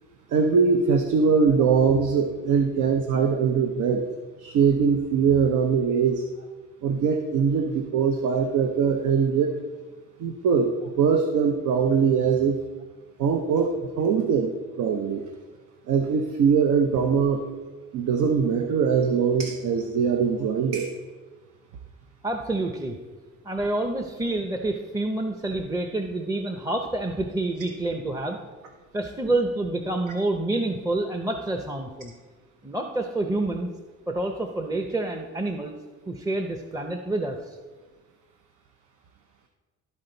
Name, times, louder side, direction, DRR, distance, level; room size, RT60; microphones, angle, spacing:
voice 1, 0.3-4.1 4.4-6.2 6.8-9.6 10.2-12.6 13.2-14.5 14.8-15.2 15.9-17.4 17.9-20.9, right 6 dB, 80° right, 4 dB, 0.7 m, -22 dB
voice 2, 22.2-23.0 23.4-28.4 28.9-32.1 32.6-33.7 34.1-35.8 36.1-37.6, right 2 dB, 10° right, 4 dB, 0.6 m, -28 dB
12.5 x 4.3 x 3.9 m, 1.4 s
cardioid pair, 90°, 30 cm